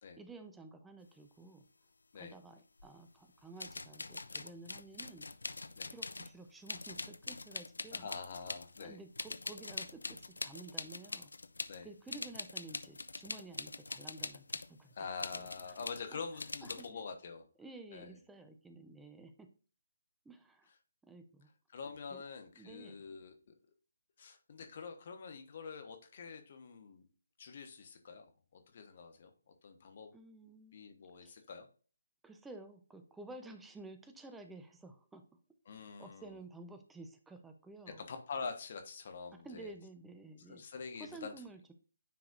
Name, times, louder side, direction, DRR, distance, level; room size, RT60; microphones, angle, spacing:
voice 1, 0.2-1.7 2.1-5.2 5.8-8.1 8.8-11.3 11.8-14.9 15.3-15.5 16.1-16.2 16.6-17.1 17.6-19.5 20.2-20.7 21.0-21.5 22.1-22.2 22.6-23.0 30.1-30.8 31.2-31.3 32.2-35.2 35.7-38.0 39.4-40.6 41.0-41.7, right 2 dB, 5° right, 7 dB, 0.7 m, -52 dB
sound 1, 2.8-2.9 3.6-6.4 6.7-8.9 9.1-11.8 12.1-14.7 15.2-16.0 16.4-16.9, left 3 dB, 75° left, 0.5 m, -43 dB
voice 2, 7.9-9.0 11.7-11.9 14.9-17.4 17.9-18.2 21.7-23.5 24.2-27.1 27.4-29.3 29.6-30.1 30.7-31.7 35.7-36.3 38.0-39.7 40.5-41.3, left 5 dB, 45° left, 6 dB, 1.1 m, -46 dB
9.4 x 4.9 x 2.5 m, 0.37 s
figure-of-eight pair, 145°, 0 cm